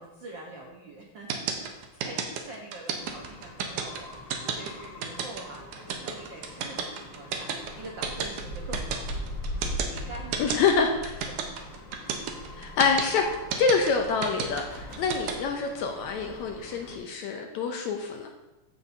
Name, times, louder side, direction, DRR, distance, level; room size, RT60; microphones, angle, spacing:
voice 1, 0.0-9.2 9.9-11.7 14.9-15.2, right 2 dB, 85° right, -2 dB, 1.0 m, -45 dB
sound 1, 1.3-15.3, right 7 dB, 70° right, 2.1 m, -31 dB
sound 2, 3.0-17.0, equal, 60° left, 1.3 m, -41 dB
voice 2, 10.4-10.9 12.6-13.3 13.6-18.3, left 5 dB, 75° left, 3 dB, 1.8 m, -26 dB
14.5 x 6.3 x 2.7 m, 1.0 s
omnidirectional pair, 3.8 m